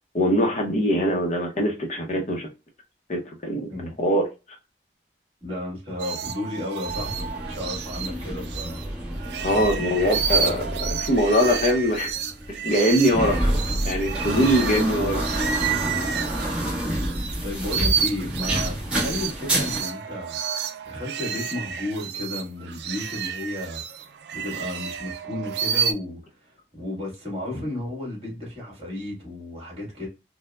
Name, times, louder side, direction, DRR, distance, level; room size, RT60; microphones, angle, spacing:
voice 1, 0.1-2.5 3.1-3.6 4.0-4.3 9.4-12.1 12.6-13.5 13.8-15.2, equal, 40° left, 0.7 m, -22 dB
voice 2, 5.4-8.8 14.3-14.8 16.4-16.8 17.1-20.4 20.8-23.8 24.3-30.1, left 1 dB, 35° right, 1.7 m, -33 dB
sound 1, 6.0-8.9 9.2-17.4 17.6-25.9, right 7 dB, 70° right, 0.3 m, -30 dB
sound 2, 6.9-19.8, right 1 dB, 5° right, 1.0 m, -29 dB
4.3 x 2.1 x 2.3 m
head